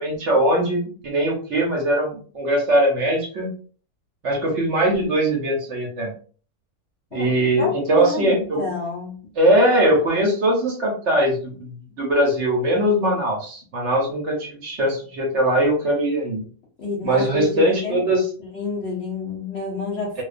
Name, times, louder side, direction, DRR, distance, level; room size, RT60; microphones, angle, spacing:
voice 1, 0.0-3.5 4.2-6.1 7.1-8.6 9.4-16.4 17.0-18.3, right 1 dB, 60° right, 0 dB, 0.9 m, -21 dB
voice 2, 7.6-9.3 16.8-18.0 18.5-20.2, left 3 dB, 55° left, -3 dB, 0.8 m, -29 dB
2.3 x 2.3 x 2.4 m, 0.42 s
omnidirectional pair, 1.6 m